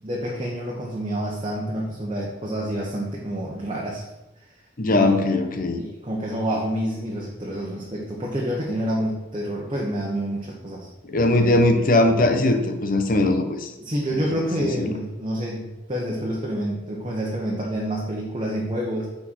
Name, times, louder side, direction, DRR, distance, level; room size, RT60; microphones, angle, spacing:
voice 1, 0.0-4.0 4.9-5.3 5.8-10.9 13.8-19.1, right 1 dB, 30° right, -4 dB, 1.2 m, -28 dB
voice 2, 4.8-5.8 11.1-13.7 14.1-14.3 14.6-14.9, left 2 dB, 50° left, 6 dB, 1.0 m, -20 dB
9.4 x 4.6 x 4.3 m, 1.0 s
head